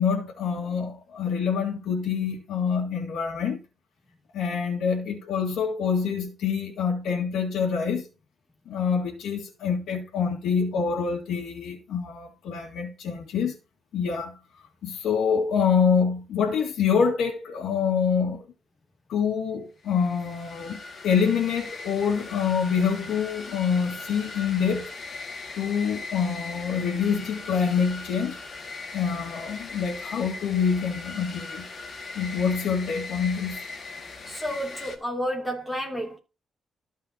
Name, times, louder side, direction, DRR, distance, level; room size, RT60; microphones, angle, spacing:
voice 1, 0.0-3.6 4.3-8.1 8.7-13.6 13.9-14.3 14.8-18.4 19.1-24.9 25.6-28.4 28.9-31.7 32.2-33.6, left 6 dB, 90° left, 2.0 m, -26 dB
sound 1, 19.8-35.0, left 3 dB, 35° left, 1.8 m, -39 dB
voice 2, 34.3-36.2, equal, 5° left, 2.7 m, -31 dB
13.5 x 5.5 x 2.9 m
cardioid pair, 160°, 0 cm